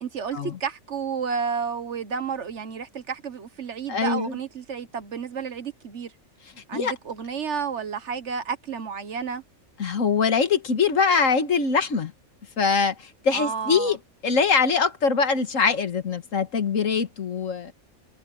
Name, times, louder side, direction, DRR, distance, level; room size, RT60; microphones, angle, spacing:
voice 1, 0.0-6.1 6.7-9.4 13.3-13.9, right 6 dB, 55° right, 1.4 m, -31 dB
voice 2, 3.9-4.4 6.7-6.9 9.8-12.1 12.6-14.0 14.2-17.7, left 5 dB, 65° left, 1.8 m, -23 dB
omnidirectional pair, 1.4 m